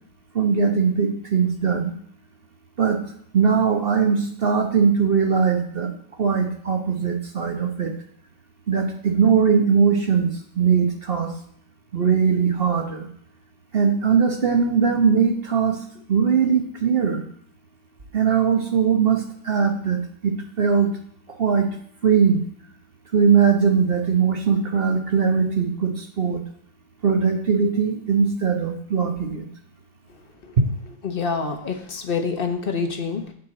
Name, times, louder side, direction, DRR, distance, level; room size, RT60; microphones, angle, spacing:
voice 1, 0.3-1.9 2.8-3.0 3.3-5.9 6.2-7.9 8.7-11.3 11.9-13.1 13.7-15.8 16.1-17.2 18.1-20.9 21.3-21.7 22.0-22.4 23.1-26.4 27.0-29.5, right 6 dB, 40° right, 3 dB, 0.9 m, -20 dB
voice 2, 31.0-33.3, left 5 dB, 35° left, 4 dB, 1.0 m, -26 dB
9.8 x 4.6 x 7.7 m, 0.63 s
omnidirectional pair, 2.2 m